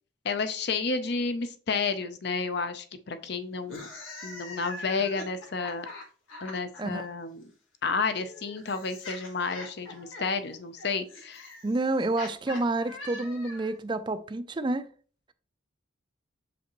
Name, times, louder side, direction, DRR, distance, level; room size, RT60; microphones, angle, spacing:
voice 1, 0.2-3.9 4.2-5.9 6.4-7.4 7.8-11.5, left 4 dB, 55° left, 0.6 m, -31 dB
sound 1, 3.6-6.8 7.9-13.8, left 2 dB, 90° left, 1.7 m, -43 dB
voice 2, 11.6-14.9, right 2 dB, 25° right, 0.4 m, -29 dB
6.9 x 5.1 x 3.0 m
head